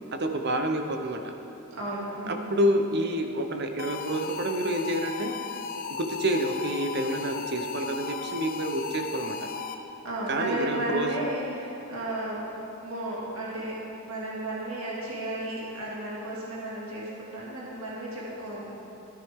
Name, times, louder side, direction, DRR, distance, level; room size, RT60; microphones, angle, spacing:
voice 1, 0.2-1.3 2.3-5.3 6.0-9.4 10.3-11.1, right 1 dB, 50° right, 5 dB, 0.8 m, -28 dB
voice 2, 1.7-2.5 10.0-12.4 12.8-13.7 14.0-18.7, right 1 dB, 80° right, -6 dB, 2.3 m, -33 dB
sound 1, 3.8-10.1, left 5 dB, 45° left, 0.5 m, -36 dB
13.5 x 10.0 x 3.7 m, 3.0 s
head